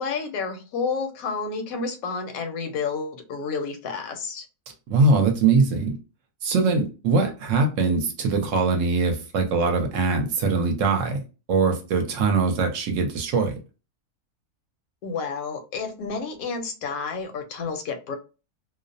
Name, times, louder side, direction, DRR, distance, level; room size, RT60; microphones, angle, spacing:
voice 1, 0.0-4.5 15.0-18.2, left 5 dB, 80° left, 1.0 m, -30 dB
voice 2, 4.9-5.9 6.4-11.2 11.5-13.5, right 4 dB, 70° right, 0.9 m, -22 dB
2.5 x 2.0 x 2.5 m
omnidirectional pair, 1.5 m